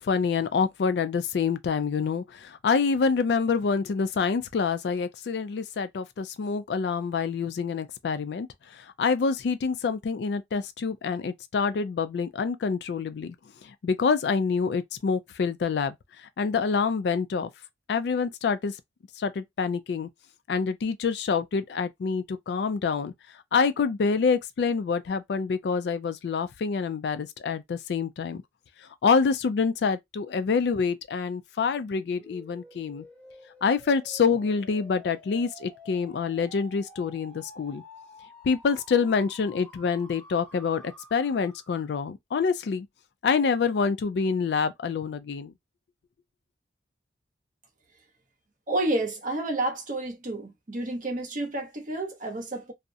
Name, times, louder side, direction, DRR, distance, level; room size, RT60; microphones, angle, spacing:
voice 1, 0.0-8.5 8.7-13.4 13.6-17.5 17.9-18.7 19.2-20.1 20.5-23.1 23.5-28.4 29.0-33.0 33.6-37.8 38.4-42.9 43.2-45.5, left 5 dB, 65° left, 0.3 m, -26 dB
sound 1, 32.2-42.0, equal, 5° left, 0.5 m, -50 dB
voice 2, 48.7-52.7, right 2 dB, 45° right, 0.7 m, -30 dB
2.4 x 2.0 x 2.6 m
head